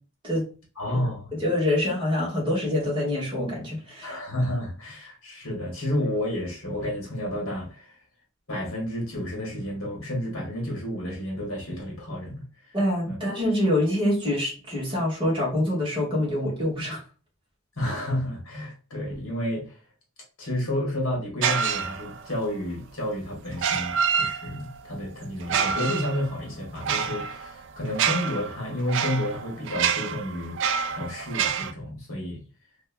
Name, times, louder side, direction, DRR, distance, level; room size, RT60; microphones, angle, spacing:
voice 1, 0.7-1.3 4.0-8.0 8.5-12.7 13.1-13.2 17.8-19.8 20.4-30.5 30.9-32.4, left 1 dB, 70° left, 1.7 m, -31 dB
voice 2, 1.4-4.2 12.7-17.0, left 1 dB, 25° right, 1.9 m, -25 dB
sound 1, 21.4-22.4 23.5-24.8 25.4-31.7, right 7 dB, 55° right, 0.3 m, -27 dB
3.5 x 3.5 x 2.2 m
head